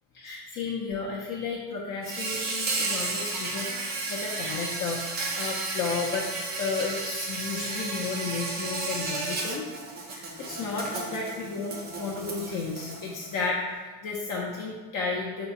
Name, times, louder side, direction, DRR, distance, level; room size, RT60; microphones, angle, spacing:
voice 1, 0.1-6.3 6.6-9.7 10.0-15.5, left 4 dB, 45° left, -4 dB, 0.5 m, -33 dB
Insect, 2.0-13.4, right 3 dB, 25° right, 0.3 m, -33 dB
3.8 x 2.7 x 2.4 m, 1.4 s
supercardioid pair, 105°, 46 cm